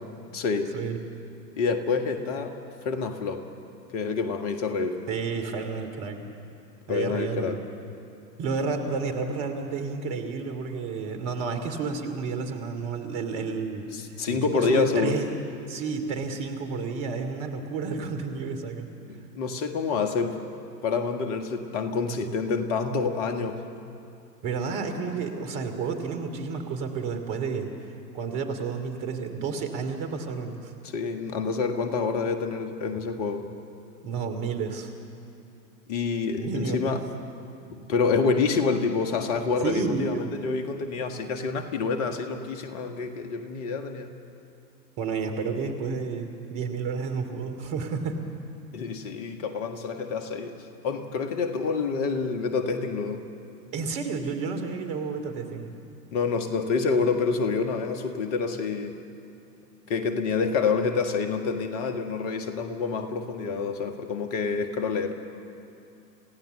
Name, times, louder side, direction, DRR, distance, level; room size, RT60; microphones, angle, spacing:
voice 1, 0.3-0.7 1.6-2.5 2.8-3.4 3.9-5.0 6.9-7.6 13.9-15.2 19.3-20.4 20.8-23.6 30.8-33.4 35.9-37.0 37.7-44.1 48.7-50.6 50.8-53.2 56.1-59.0 59.9-65.1, left 4 dB, 45° left, 6 dB, 1.9 m, -27 dB
voice 2, 5.1-6.2 6.9-7.6 8.4-15.3 15.7-18.9 24.4-27.7 28.1-30.7 34.0-34.9 36.4-37.0 39.6-40.3 45.0-48.2 53.7-55.7, right 5 dB, 45° right, 6 dB, 2.9 m, -31 dB
28.0 x 16.5 x 6.9 m, 2.6 s
figure-of-eight pair, 100°, 50 cm